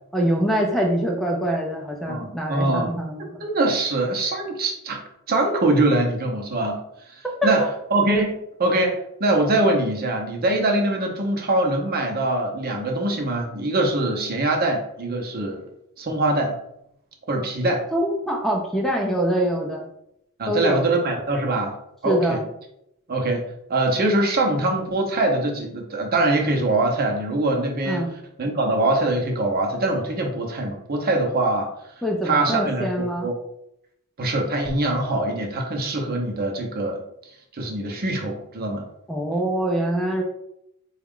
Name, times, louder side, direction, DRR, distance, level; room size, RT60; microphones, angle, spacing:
voice 1, 0.1-3.4 7.4-7.5 17.9-19.8 20.5-20.8 22.0-22.4 27.9-28.1 32.0-33.3 39.1-40.2, right 1 dB, ahead, -1 dB, 0.4 m, -24 dB
voice 2, 2.1-2.9 3.4-5.0 5.3-7.7 7.9-15.6 16.0-16.6 17.3-17.8 20.4-21.8 22.0-22.4 23.1-23.4 23.7-31.7 32.2-33.3 34.2-37.0 37.5-38.8, right 2 dB, 45° right, 2 dB, 0.8 m, -23 dB
4.2 x 2.3 x 3.6 m, 0.79 s
head